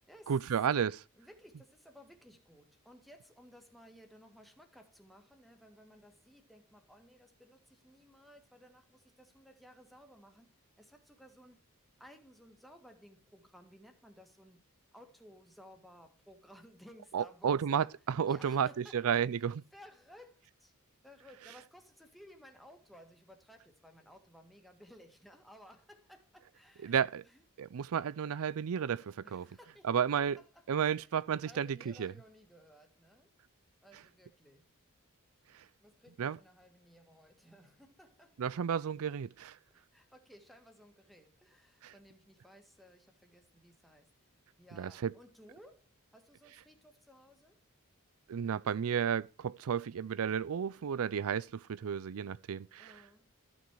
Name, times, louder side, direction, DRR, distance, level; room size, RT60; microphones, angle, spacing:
voice 1, 0.3-1.0 17.1-19.6 26.8-27.2 27.6-29.5 29.8-30.4 30.7-32.1 35.5-35.6 36.2-36.4 38.4-39.6 41.8-41.9 44.7-45.1 48.3-53.0, right 7 dB, 65° right, 0.4 m, -32 dB
voice 2, 1.2-11.6 12.0-14.7 14.9-17.9 18.3-19.4 19.7-20.7 21.0-27.4 29.2-31.1 31.5-33.3 33.8-34.7 35.8-38.4 39.9-44.1 44.6-47.6 52.8-53.3, equal, ahead, 1.8 m, -58 dB
14.0 x 6.3 x 4.8 m
head